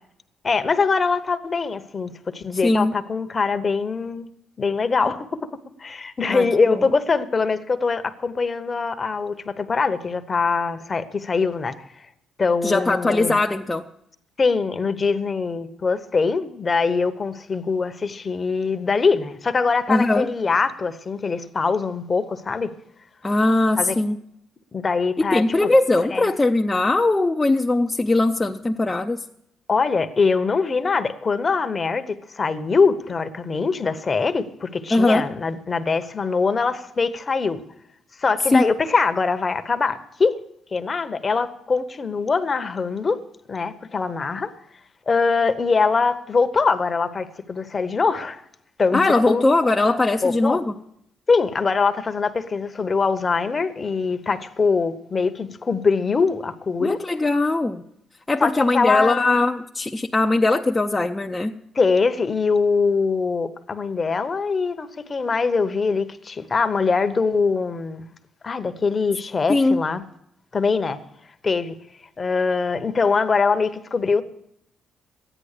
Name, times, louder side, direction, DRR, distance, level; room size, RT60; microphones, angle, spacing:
voice 1, 0.4-4.3 4.6-5.5 5.8-11.8 12.4-13.3 14.4-22.7 23.8-23.9 24.7-25.7 26.1-26.2 29.7-37.6 38.2-40.4 40.7-43.2 43.5-44.5 45.1-48.4 48.8-49.0 49.3-49.5 50.2-50.6 51.3-57.0 58.4-59.2 61.7-68.1 68.4-70.0 70.5-71.0 71.4-71.8 72.2-74.2, left 4 dB, 35° left, 0.9 m, -23 dB
voice 2, 2.6-2.9 6.3-6.8 12.6-13.8 19.9-20.3 23.2-24.2 25.3-29.2 34.9-35.3 38.5-38.6 48.9-50.8 56.8-57.8 58.3-61.6 69.5-69.8, left 2 dB, 20° left, 0.5 m, -20 dB
13.5 x 10.0 x 6.6 m
cardioid pair, 90°, 0 cm